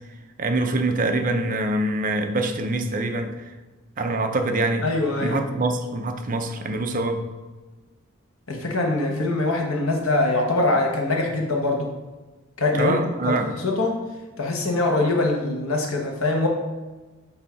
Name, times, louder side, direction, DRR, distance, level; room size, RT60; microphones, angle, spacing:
voice 1, 0.4-3.4 4.0-4.9 5.2-7.2 12.8-13.5, right 2 dB, 40° right, 6 dB, 0.5 m, -24 dB
voice 2, 4.8-5.4 8.5-11.9 12.6-13.0 13.3-14.0 14.4-16.5, left 2 dB, 80° left, 1 dB, 1.1 m, -23 dB
6.9 x 2.7 x 5.5 m, 1.2 s
head